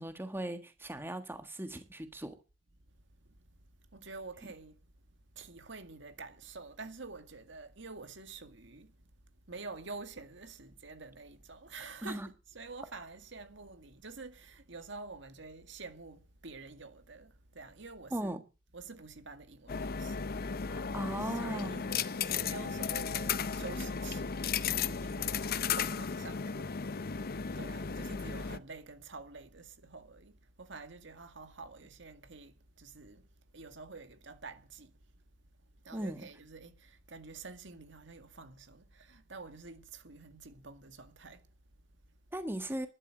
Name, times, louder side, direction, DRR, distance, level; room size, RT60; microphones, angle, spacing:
voice 1, 0.0-2.4 12.0-12.3 18.1-18.4 20.7-21.8 35.9-36.3 42.3-42.9, right 1 dB, 10° right, 1.5 m, -38 dB
voice 2, 2.9-18.4 18.7-42.1, right 3 dB, 70° right, 2.0 m, -49 dB
sound 1, 19.7-28.6, left 6 dB, 55° left, 0.7 m, -35 dB
12.0 x 11.5 x 7.7 m
head